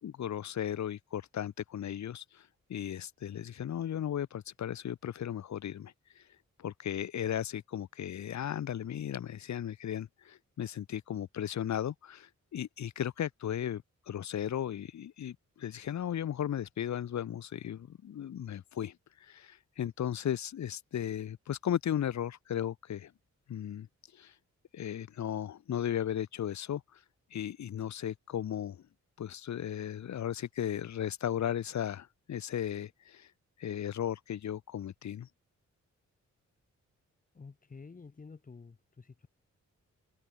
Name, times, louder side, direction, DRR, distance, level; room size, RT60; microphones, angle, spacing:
voice 1, 0.0-6.2 6.6-23.1 23.5-23.9 24.1-24.3 24.7-27.0 27.3-28.8 29.2-33.3 33.6-35.3, left 10 dB, 70° left, 1.5 m, -36 dB
voice 2, 37.3-39.3, left 4 dB, 30° left, 3.0 m, -50 dB
open air
wide cardioid pair, 175°, 29 cm